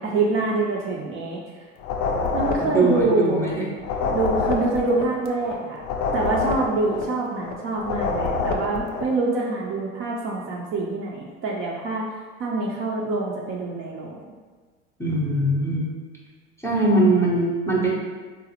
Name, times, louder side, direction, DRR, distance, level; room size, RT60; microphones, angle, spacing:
voice 1, 0.0-1.4 2.3-3.5 4.1-5.8 6.1-12.1 12.4-14.2, right 3 dB, 35° right, -3 dB, 0.4 m, -25 dB
sound 1, 1.8-3.5 3.8-7.5 7.8-9.2, left 4 dB, 75° left, 0.6 m, -27 dB
voice 2, 2.6-3.7 15.0-15.9 16.6-17.9, right 2 dB, 5° left, -4 dB, 0.6 m, -21 dB
3.9 x 2.0 x 2.8 m, 1.4 s
hypercardioid pair, 85°, 40 cm